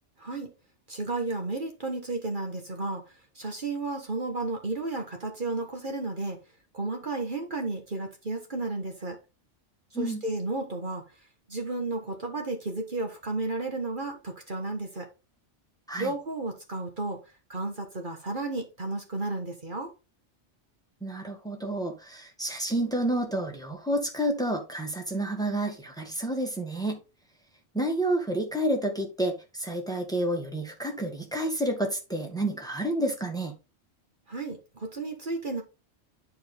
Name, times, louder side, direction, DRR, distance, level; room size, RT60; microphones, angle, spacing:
voice 1, 0.9-3.0 3.3-6.4 6.7-9.2 9.9-11.0 11.5-15.0 16.0-17.2 17.5-19.9 34.3-35.6, right 2 dB, 45° right, 1.6 m, -33 dB
voice 2, 21.0-27.0 27.7-33.5, right 1 dB, 5° left, 1.8 m, -29 dB
10.5 x 4.6 x 3.5 m
omnidirectional pair, 1.2 m